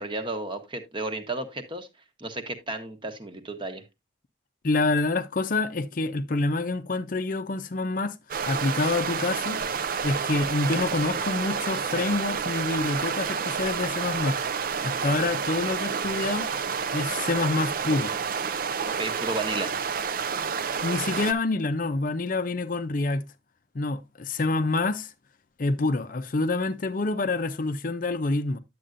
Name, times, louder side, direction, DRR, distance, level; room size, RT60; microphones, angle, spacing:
voice 1, 0.0-1.9 2.2-3.8 19.0-19.7, right 2 dB, 25° right, 1.0 m, -33 dB
voice 2, 4.6-8.1 8.5-9.6 10.0-14.4 14.8-16.5 16.9-18.1 20.8-23.2 23.7-25.1 25.6-28.6, left 3 dB, 45° left, 0.5 m, -27 dB
sound 1, 8.3-21.3, right 6 dB, 45° right, 0.4 m, -29 dB
10.0 x 7.6 x 2.5 m
head